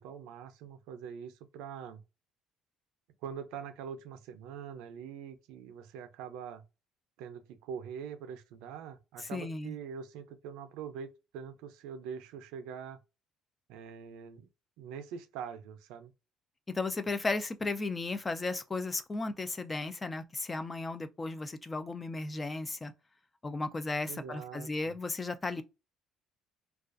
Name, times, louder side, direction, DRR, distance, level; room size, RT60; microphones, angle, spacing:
voice 1, 0.0-2.0 3.2-6.6 7.2-13.0 13.7-14.5 14.8-16.1 24.1-24.9, right 7 dB, 90° right, 0.4 m, -44 dB
voice 2, 9.2-9.7 16.7-22.9 23.4-25.6, left 3 dB, 20° left, 0.3 m, -35 dB
2.3 x 2.3 x 2.4 m
cardioid pair, 110°, 0 cm